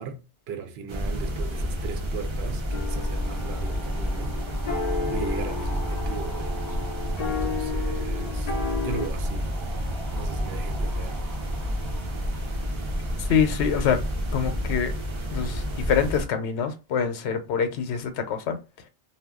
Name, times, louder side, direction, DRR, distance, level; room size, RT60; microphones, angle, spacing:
voice 1, 0.0-4.4 4.6-6.8 7.3-8.5 8.8-9.5 10.1-11.2, right 6 dB, 70° right, 0.8 m, -38 dB
sound 1, 0.9-16.3, equal, 50° right, 0.3 m, -29 dB
sound 2, 2.3-13.4, equal, ahead, 0.5 m, -46 dB
sound 3, 2.7-9.1, left 5 dB, 55° left, 0.4 m, -33 dB
voice 2, 13.2-14.0 14.3-14.9 15.3-18.6, left 7 dB, 80° left, 0.9 m, -25 dB
2.2 x 2.0 x 3.5 m
omnidirectional pair, 1.2 m